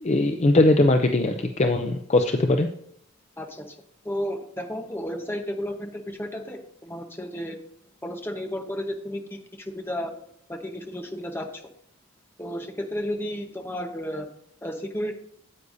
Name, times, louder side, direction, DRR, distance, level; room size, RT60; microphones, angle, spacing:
voice 1, 0.0-2.7, left 2 dB, 30° left, 6 dB, 0.4 m, -20 dB
voice 2, 3.4-3.7 4.0-7.6 8.0-10.1 10.5-11.6 12.4-14.3 14.6-15.1, equal, 10° left, 4 dB, 0.9 m, -33 dB
9.7 x 8.2 x 2.6 m, 0.70 s
head